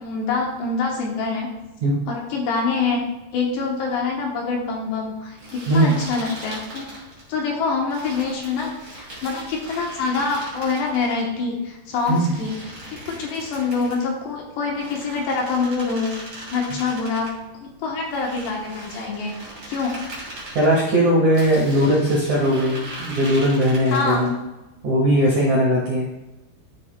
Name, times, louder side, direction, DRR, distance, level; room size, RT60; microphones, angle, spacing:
voice 1, 0.0-1.5 2.1-3.1 3.3-6.9 7.3-12.6 12.9-16.1 16.5-17.3 17.6-19.3 19.7-19.9 23.9-24.4 25.2-25.6, left 4 dB, 70° left, -1 dB, 2.8 m, -25 dB
sound 1, 5.4-7.3 7.9-11.2 11.9-14.1 14.7-17.3 18.0-20.7 21.3-24.3, right 1 dB, 25° right, 2.5 m, -39 dB
voice 2, 20.5-24.3 24.8-26.1, equal, 70° right, -4 dB, 1.8 m, -19 dB
13.0 x 6.8 x 2.2 m, 1.0 s
omnidirectional pair, 5.7 m